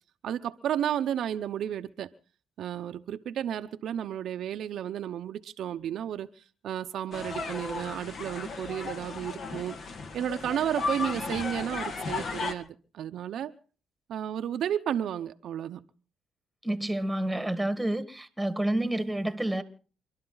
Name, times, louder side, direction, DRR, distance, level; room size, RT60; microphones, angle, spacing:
voice 1, 0.2-2.1 2.6-9.7 10.1-13.5 14.1-15.8, right 10 dB, 75° right, 0.8 m, -32 dB
sound 1, 7.1-12.5, left 4 dB, 55° left, 2.1 m, -35 dB
voice 2, 16.6-19.6, right 1 dB, 5° right, 1.8 m, -29 dB
28.5 x 11.5 x 4.0 m
cardioid pair, 90°, 0 cm